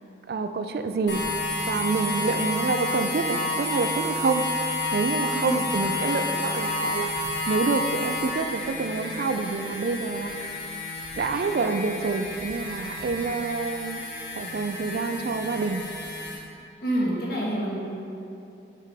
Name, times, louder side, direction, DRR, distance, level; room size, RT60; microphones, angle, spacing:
voice 1, 0.3-1.2 1.7-10.6 11.2-14.0 14.3-15.8, right 4 dB, 55° right, 8 dB, 0.3 m, -27 dB
sound 1, 1.1-16.4, left 2 dB, 85° left, 1.5 m, -30 dB
voice 2, 5.3-6.3 16.8-17.8, equal, 55° left, -5 dB, 1.3 m, -29 dB
6.0 x 4.8 x 4.7 m, 2.8 s
head